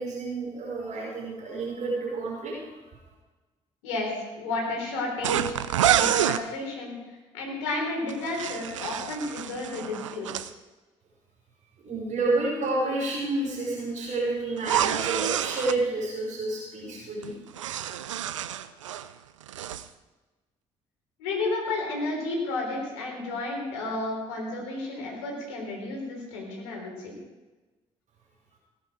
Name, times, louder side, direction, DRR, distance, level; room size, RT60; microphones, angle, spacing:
voice 1, 0.0-2.6 11.8-17.3, right 2 dB, 50° right, -3 dB, 5.1 m, -29 dB
voice 2, 3.8-7.0 7.3-10.5 21.2-27.1, left 2 dB, 75° left, 0 dB, 4.0 m, -32 dB
sound 1, 5.2-6.4 8.1-10.5 14.6-15.8 17.2-19.1 19.4-19.9, right 11 dB, 85° right, 0.4 m, -28 dB
17.5 x 10.5 x 5.1 m, 1.2 s
figure-of-eight pair, 45°, 16 cm